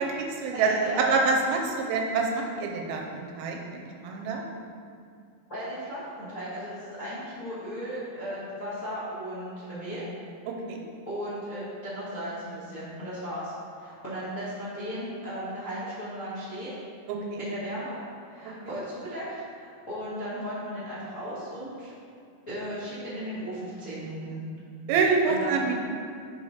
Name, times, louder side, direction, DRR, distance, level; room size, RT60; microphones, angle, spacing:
voice 1, 0.0-4.4 10.5-10.8 17.1-17.4 24.9-25.7, right 4 dB, 85° right, 1 dB, 2.5 m, -26 dB
voice 2, 0.5-1.2 5.5-10.0 11.1-13.5 13.8-16.7 17.4-17.9 18.3-19.2 19.6-21.9 22.5-24.4 25.3-25.7, equal, 45° left, -13 dB, 1.0 m, -36 dB
5.5 x 5.2 x 4.8 m, 2.3 s
omnidirectional pair, 4.3 m